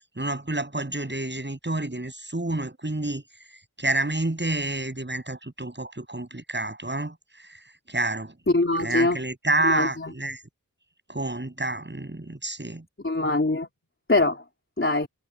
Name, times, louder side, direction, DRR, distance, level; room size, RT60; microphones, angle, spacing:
voice 1, 0.2-3.2 3.8-7.1 7.9-8.3 8.8-10.4 11.1-12.8, right 2 dB, 30° right, 7.1 m, -28 dB
voice 2, 8.5-9.2 9.6-10.1 13.0-13.7 14.1-14.4 14.8-15.1, left 2 dB, 35° left, 3.7 m, -23 dB
wide cardioid pair, 55°, 35 cm